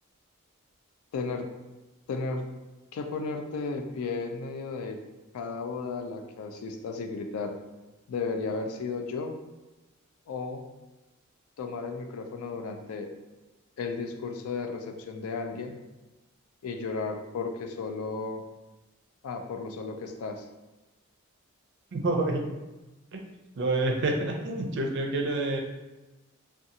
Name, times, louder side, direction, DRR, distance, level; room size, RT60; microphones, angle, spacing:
voice 1, 1.1-1.5 2.1-2.5 2.9-5.0 5.3-7.6 8.1-9.4 10.3-10.6 11.6-13.1 13.8-15.8 16.6-18.4 19.2-20.5, left 4 dB, 85° left, 5 dB, 0.4 m, -34 dB
voice 2, 21.9-22.5 23.1-23.2 23.6-25.6, right 2 dB, 55° right, 2 dB, 0.4 m, -28 dB
2.5 x 2.3 x 2.7 m, 1.1 s
head